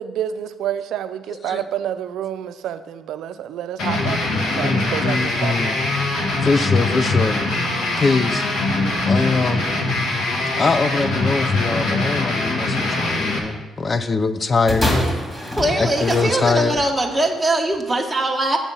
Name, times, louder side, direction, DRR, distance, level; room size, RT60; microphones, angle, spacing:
voice 1, 0.0-5.8, right 10 dB, 80° right, 12 dB, 0.5 m, -28 dB
voice 2, 1.3-1.6 4.5-5.8 6.4-7.4 8.0-8.6 9.0-9.7 10.6-14.9 15.8-16.8, left 4 dB, 35° left, 12 dB, 0.6 m, -22 dB
sound 1, 3.8-13.4, left 2 dB, 85° left, 1.4 m, -22 dB
sound 2, 14.7-16.9 17.7-17.8, left 1 dB, 15° left, 2.3 m, -24 dB
voice 3, 15.6-18.6, right 1 dB, 15° right, 0 dB, 1.2 m, -21 dB
7.2 x 7.2 x 5.4 m, 1.2 s
cardioid pair, 90°, 0 cm